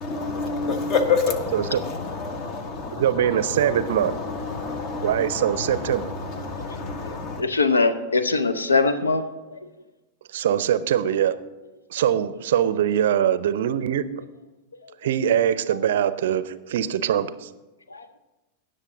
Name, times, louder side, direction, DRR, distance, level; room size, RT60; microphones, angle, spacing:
voice 1, 0.0-7.4, left 4 dB, 40° left, 9 dB, 1.3 m, -28 dB
voice 2, 2.9-4.2 5.0-6.1 10.3-11.4 11.9-14.1 15.0-17.5, right 10 dB, 60° right, 15 dB, 0.5 m, -22 dB
voice 3, 7.4-9.2 9.5-9.6 17.9-18.2, left 3 dB, 75° left, 10 dB, 0.7 m, -22 dB
18.0 x 6.7 x 3.8 m, 1.1 s
figure-of-eight pair, 90°, 0 cm